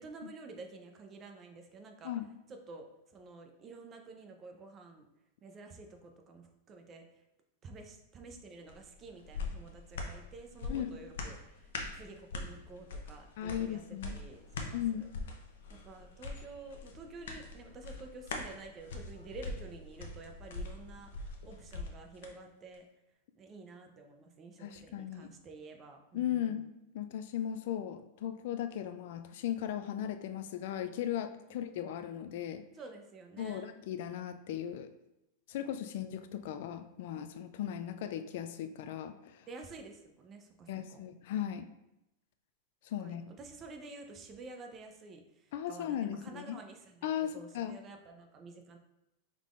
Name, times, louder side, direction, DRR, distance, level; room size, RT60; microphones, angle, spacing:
voice 1, 0.0-2.1 2.5-5.1 5.4-7.0 7.6-15.1 15.8-22.8 23.3-26.6 32.7-33.7 35.6-35.7 39.5-41.0 43.0-48.8, right 3 dB, 25° right, 4 dB, 0.6 m, -50 dB
sound 1, 8.7-22.3 22.7-22.8, left 3 dB, 80° left, 0.8 m, -43 dB
voice 2, 13.4-14.2 14.7-15.1 24.6-25.3 26.1-32.6 33.4-34.9 35.5-39.5 40.7-41.7 42.8-43.2 45.5-46.6 47.0-47.8, left 10 dB, 60° left, 10 dB, 0.3 m, -37 dB
5.6 x 3.7 x 2.5 m, 0.88 s
supercardioid pair, 150°, 0 cm